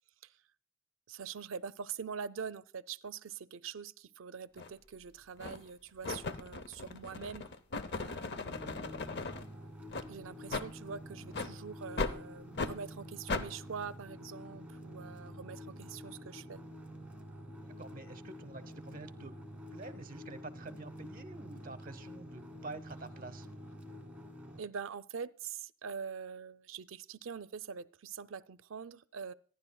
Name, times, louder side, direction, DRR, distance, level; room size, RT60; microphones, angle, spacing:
voice 1, 1.1-7.5 7.9-8.7 10.1-16.6 24.6-29.3, right 6 dB, 85° right, 14 dB, 0.5 m, -44 dB
sound 1, 4.6-4.7 5.4-5.7 6.0-9.4 9.9-10.1 10.5-10.7 11.3-11.5 12.0-12.2 12.6-12.7 13.3-13.5, left 3 dB, 60° left, 0.7 m, -37 dB
sound 2, 8.5-24.6, equal, 10° right, 1.4 m, -48 dB
voice 2, 17.6-19.3 19.7-23.5, right 2 dB, 45° right, 11 dB, 0.8 m, -47 dB
26.5 x 10.5 x 2.3 m, 0.44 s
head